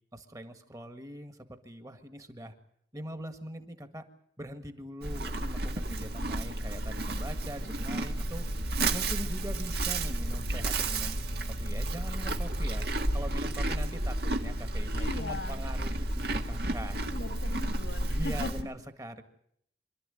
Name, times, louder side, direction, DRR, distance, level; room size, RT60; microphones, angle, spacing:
voice 1, 0.1-2.5 2.9-4.1 4.4-8.5 8.9-11.2 11.4-17.0 18.1-19.2, right 1 dB, 20° right, 8 dB, 1.8 m, -42 dB
Livestock farm animals working animals, 5.0-18.6, right 1 dB, 55° right, 1.8 m, -32 dB
voice 2, 14.9-15.6 16.9-18.5, left 2 dB, 75° left, 7 dB, 2.1 m, -39 dB
26.0 x 12.5 x 10.0 m, 0.69 s
head